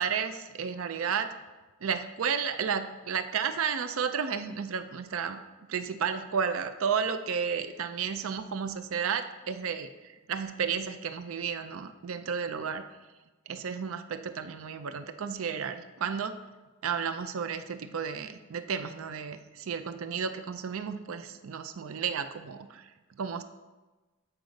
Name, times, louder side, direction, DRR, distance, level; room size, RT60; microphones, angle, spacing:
voice 1, 0.0-1.3 1.8-5.4 5.7-9.9 10.3-12.8 13.5-16.4 16.8-22.8 23.2-23.4, right 6 dB, 75° right, 10 dB, 0.5 m, -32 dB
7.9 x 4.8 x 5.2 m, 1.2 s
head